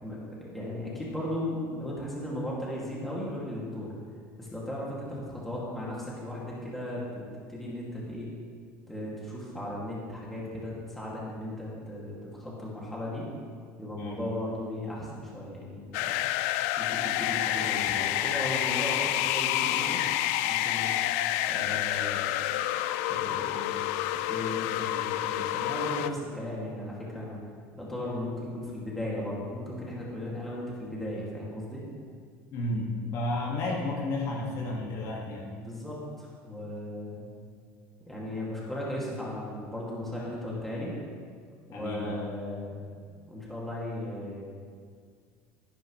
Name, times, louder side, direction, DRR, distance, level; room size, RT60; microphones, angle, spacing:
voice 1, 0.0-3.9 4.4-7.2 7.5-8.3 8.9-13.2 13.8-16.3 16.8-20.0 20.4-20.9 21.5-22.3 23.1-27.4 27.8-31.8 35.5-37.3 38.0-40.9 41.7-42.7 43.1-44.4, left 1 dB, 5° left, -6 dB, 2.3 m, -36 dB
sound 1, 15.9-26.1, left 14 dB, 75° left, 0.4 m, -28 dB
voice 2, 32.5-35.5 41.7-42.3, left 2 dB, 50° left, -2 dB, 1.9 m, -32 dB
16.5 x 10.0 x 3.2 m, 2.1 s
cardioid pair, 170°, 7 cm